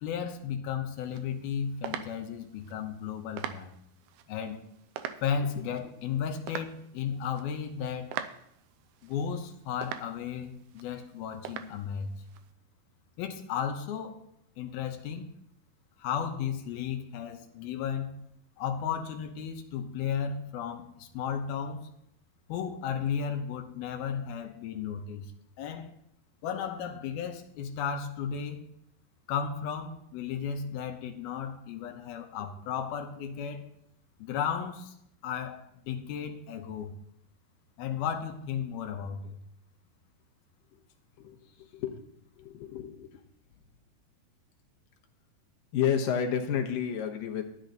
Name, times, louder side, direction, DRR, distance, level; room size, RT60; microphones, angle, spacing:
voice 1, 0.0-3.8 4.3-4.6 5.2-8.1 9.0-12.1 13.2-14.2 14.6-15.3 16.0-18.2 18.6-21.9 22.5-25.3 25.6-25.9 26.4-28.6 29.3-33.6 34.2-35.0 35.2-36.9 37.8-39.4, left 7 dB, 90° left, 4 dB, 2.9 m, -34 dB
sound 1, 0.9-12.5, right 10 dB, 80° right, 2.4 m, -44 dB
voice 2, 41.2-42.0 42.4-43.2 45.7-47.4, left 8 dB, 70° left, 3 dB, 2.7 m, -31 dB
12.5 x 10.5 x 4.0 m, 0.73 s
omnidirectional pair, 4.3 m